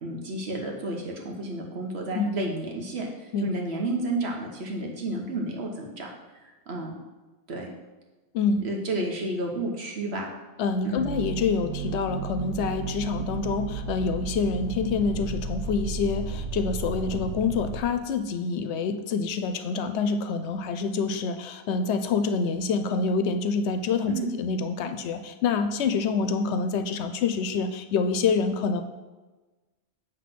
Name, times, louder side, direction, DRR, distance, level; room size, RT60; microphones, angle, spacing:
voice 1, 0.0-6.1 6.7-6.9 7.5-7.7 8.6-10.3 10.8-11.1 24.1-24.3, right 2 dB, 65° right, 1 dB, 1.3 m, -31 dB
voice 2, 8.3-8.7 10.6-28.8, left 5 dB, 75° left, 9 dB, 0.8 m, -27 dB
sound 1, 11.0-17.8, right 4 dB, 40° right, 0.7 m, -33 dB
7.7 x 3.3 x 5.9 m, 1.2 s
omnidirectional pair, 1.2 m